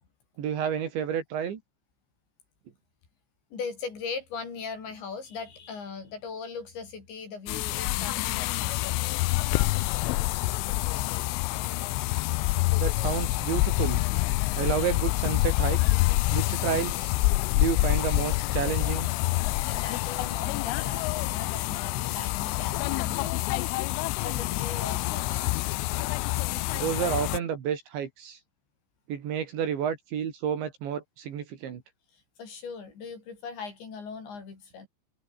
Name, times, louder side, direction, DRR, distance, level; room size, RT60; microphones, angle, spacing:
voice 1, 0.4-1.6 12.8-14.0 14.6-15.8 16.3-17.1 17.5-19.1 26.7-28.4 29.1-31.8, right 8 dB, 70° right, 5.1 m, -30 dB
voice 2, 3.5-9.0 19.7-23.7 24.2-25.6 32.4-34.9, left 5 dB, 65° left, 8.5 m, -39 dB
sound 1, 7.5-27.4, left 20 dB, 85° left, 3.3 m, -27 dB
omnidirectional pair, 5.5 m